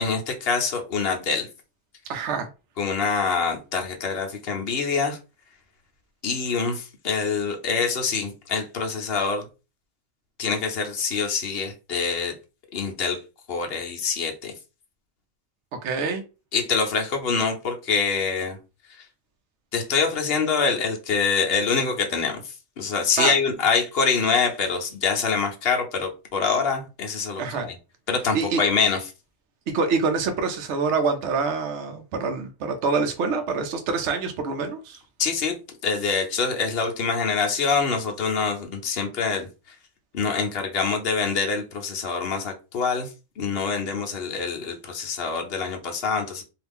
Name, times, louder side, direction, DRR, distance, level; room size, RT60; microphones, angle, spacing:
voice 1, 0.0-1.5 2.8-5.2 6.2-9.5 10.4-12.3 12.7-13.2 13.5-14.5 16.5-18.6 19.7-27.7 28.1-29.0 35.2-35.5 35.8-39.5 40.1-43.1 43.4-46.4, left 5 dB, 55° left, 3 dB, 0.9 m, -25 dB
voice 2, 2.1-2.5 15.8-16.2 23.2-23.3 27.4-27.7 28.3-28.6 29.7-35.0, right 4 dB, 65° right, 5 dB, 0.8 m, -26 dB
2.8 x 2.4 x 3.5 m, 0.31 s
omnidirectional pair, 1.3 m